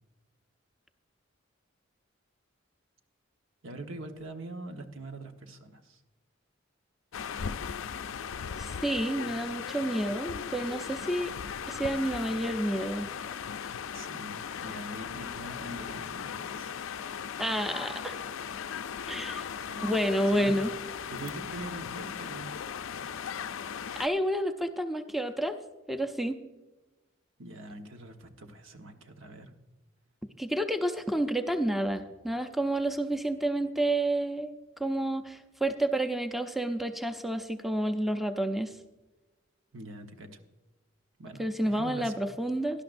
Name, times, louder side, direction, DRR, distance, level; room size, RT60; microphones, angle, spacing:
voice 1, 3.6-6.0 13.9-16.7 19.7-19.9 20.3-20.6 21.1-22.5 27.4-29.5 39.7-40.4 41.2-42.3, right 2 dB, 70° right, 5 dB, 1.1 m, -43 dB
sound 1, 7.1-24.1, left 7 dB, 80° left, 0.4 m, -38 dB
voice 2, 8.6-11.3 11.7-13.1 17.4-18.2 19.1-19.5 19.8-20.7 24.0-25.6 25.9-26.4 30.4-38.7 41.4-42.8, right 1 dB, ahead, 7 dB, 0.5 m, -30 dB
18.0 x 11.5 x 2.6 m, 1.1 s
head